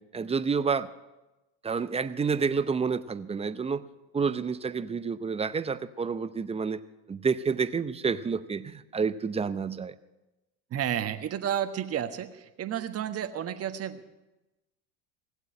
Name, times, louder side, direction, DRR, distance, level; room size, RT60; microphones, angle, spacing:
voice 1, 0.1-0.9 1.6-3.8 4.1-6.8 7.1-9.9, right 5 dB, 15° right, 13 dB, 0.6 m, -29 dB
voice 2, 10.7-14.1, right 10 dB, 35° right, 7 dB, 1.4 m, -31 dB
18.0 x 8.1 x 9.7 m, 1.0 s
supercardioid pair, 105°, 41 cm